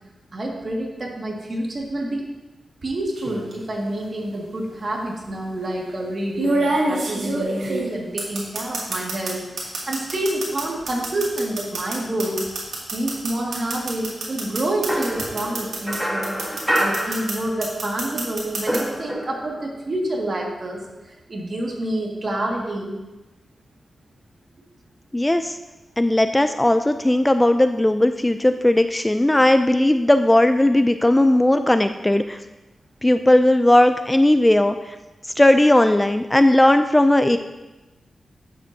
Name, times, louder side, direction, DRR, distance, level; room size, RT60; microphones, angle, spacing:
voice 1, 0.3-2.3 2.8-12.5 12.9-16.4 16.8-23.0, right 1 dB, 45° right, -1 dB, 1.9 m, -28 dB
sound 1, 3.2-3.5 4.7-4.8 6.4-9.3 9.6-16.0 16.2-17.3 17.6-18.8, right 2 dB, 80° right, 2.3 m, -26 dB
sound 2, 14.9-17.9 18.2-19.7, equal, 5° right, 1.2 m, -27 dB
voice 2, 25.1-25.6 26.0-32.4 33.0-34.8 35.4-37.4, left 1 dB, 15° left, 9 dB, 0.3 m, -17 dB
10.5 x 7.6 x 2.7 m, 1.1 s
wide cardioid pair, 85°, 0 cm